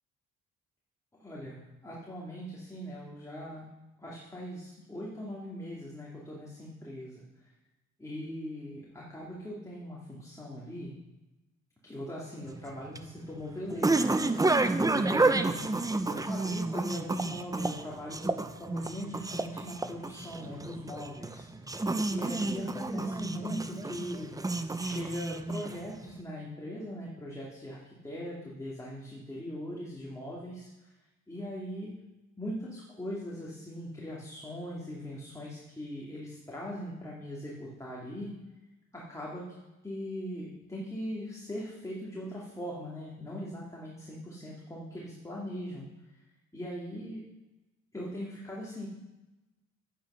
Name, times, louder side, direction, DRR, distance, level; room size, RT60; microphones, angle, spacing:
voice 1, 1.1-3.6 4.0-7.2 8.0-10.9 11.8-14.2 14.8-15.7 16.1-18.3 18.6-21.5 22.1-24.3 24.8-30.7 31.3-31.9 32.4-38.3 38.9-39.5 39.8-45.9 46.5-47.2 47.9-48.9, equal, 10° left, -5 dB, 2.6 m, -40 dB
sound 1, 12.5-26.0, right 2 dB, 10° right, 0.7 m, -30 dB
9.2 x 8.8 x 5.7 m, 1.0 s
cardioid pair, 90°, 30 cm